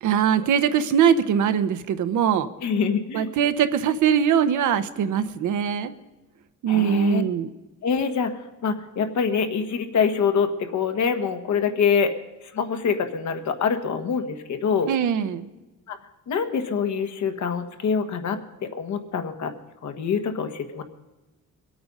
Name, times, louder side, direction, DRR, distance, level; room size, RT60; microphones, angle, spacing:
voice 1, 0.0-2.5 3.1-5.9 6.6-7.5 14.9-15.5, right 8 dB, 75° right, 10 dB, 1.0 m, -22 dB
voice 2, 2.6-3.3 6.7-7.2 7.8-12.1 12.5-14.9 15.9-16.0 16.3-19.5 19.8-20.8, left 6 dB, 70° left, 6 dB, 1.5 m, -25 dB
22.5 x 8.7 x 5.4 m, 1.1 s
cardioid pair, 90°, 30 cm